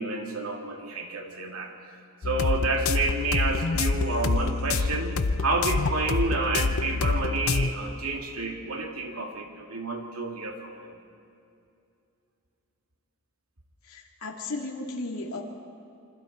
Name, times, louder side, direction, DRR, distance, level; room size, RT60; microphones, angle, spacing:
voice 1, 0.0-1.7 2.2-11.0, right 3 dB, 80° right, 2 dB, 2.7 m, -30 dB
sound 1, 2.2-7.7, left 4 dB, 70° left, 0.7 m, -26 dB
voice 2, 13.9-15.4, left 2 dB, 90° left, 0 dB, 2.4 m, -35 dB
27.0 x 25.5 x 4.4 m, 2.6 s
head